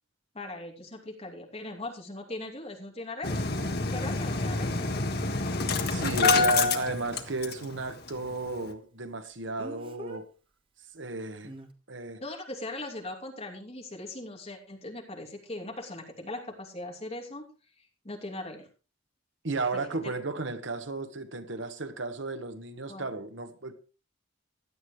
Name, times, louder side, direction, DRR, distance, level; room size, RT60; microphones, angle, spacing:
voice 1, 0.3-3.4 3.8-4.9 6.2-6.6 12.2-17.4 17.8-18.7 19.7-19.9 22.9-23.0, left 2 dB, 35° left, 2.8 m, -40 dB
Engine starting, 3.2-7.8 8.1-8.2 8.5-8.7, left 3 dB, 55° left, 1.5 m, -27 dB
Speech, 4.3-4.4 9.6-10.2 11.4-11.7, equal, 25° right, 1.4 m, -43 dB
voice 2, 5.9-10.3 10.9-11.5 11.9-12.2 19.4-23.7, right 3 dB, 70° right, 1.4 m, -34 dB
16.5 x 11.0 x 3.3 m
head